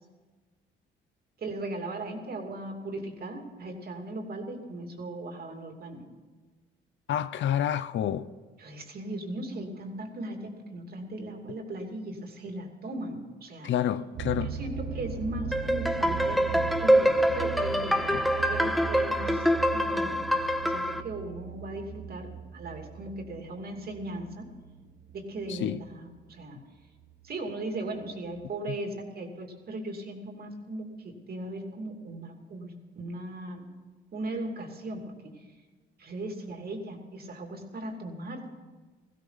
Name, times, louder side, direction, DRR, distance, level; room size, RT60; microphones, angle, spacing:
voice 1, 1.4-6.0 8.6-13.7 14.4-20.2 20.6-24.5 25.1-26.6 27.2-33.7 34.1-35.5 36.0-38.5, right 2 dB, 50° right, 2 dB, 2.8 m, -38 dB
voice 2, 7.1-8.3 13.6-14.5 18.1-18.2 25.5-25.8, left 10 dB, 70° left, 14 dB, 0.6 m, -28 dB
sound 1, 14.1-26.4 27.0-27.4 28.0-28.1 28.4-28.5, right 8 dB, 85° right, 1.1 m, -39 dB
sound 2, 15.5-21.0, equal, ahead, 0.8 m, -25 dB
17.5 x 15.5 x 4.0 m, 1.3 s
cardioid pair, 90°, 20 cm